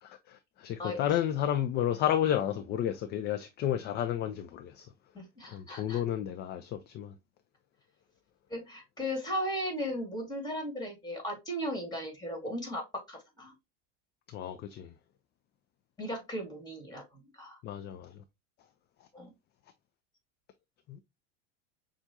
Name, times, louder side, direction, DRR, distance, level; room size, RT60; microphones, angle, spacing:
voice 1, 0.0-4.9 5.5-7.1 14.3-14.9 17.6-18.2 20.9-21.0, left 10 dB, 30° left, 0.3 m, -32 dB
voice 2, 5.1-6.0 8.5-13.5 16.0-17.0 17.3-17.6 19.1-19.3, equal, 10° left, 2.0 m, -36 dB
5.8 x 2.4 x 2.7 m
supercardioid pair, 110°, 36 cm